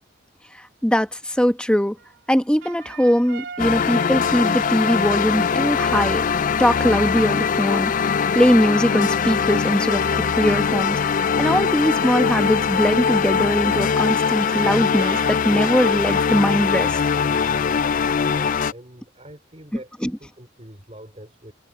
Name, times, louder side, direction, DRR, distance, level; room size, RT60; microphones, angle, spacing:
voice 1, 0.5-2.0 2.3-6.2 6.6-7.9 8.3-11.0 11.4-17.0 20.0-20.1, equal, 5° left, 1.2 m, -21 dB
sound 1, 2.0-14.0 14.2-16.5, right 6 dB, 65° right, 3.4 m, -42 dB
sound 2, 3.6-18.7, left 6 dB, 40° left, 0.3 m, -21 dB
voice 2, 18.0-21.5, right 1 dB, 30° right, 4.3 m, -44 dB
head